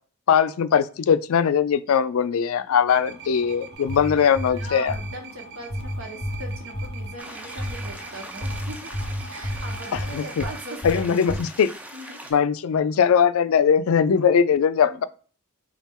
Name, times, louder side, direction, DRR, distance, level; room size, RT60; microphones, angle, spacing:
voice 1, 0.3-4.9 9.9-10.4 10.8-11.7 12.3-15.0, left 7 dB, 75° left, 0.4 m, -20 dB
sound 1, 2.9-10.8, right 4 dB, 50° right, 0.7 m, -42 dB
sound 2, 3.7-5.2 5.7-7.1 7.6-7.9 8.4-10.5 10.8-11.4, equal, 25° left, 0.8 m, -31 dB
voice 2, 4.5-8.9 9.3-11.0 11.3-11.5 11.9-12.4 14.9-15.0, right 1 dB, 70° right, 1.2 m, -40 dB
sound 3, 7.2-12.3, right 1 dB, 5° right, 0.3 m, -41 dB
4.2 x 2.4 x 3.6 m
head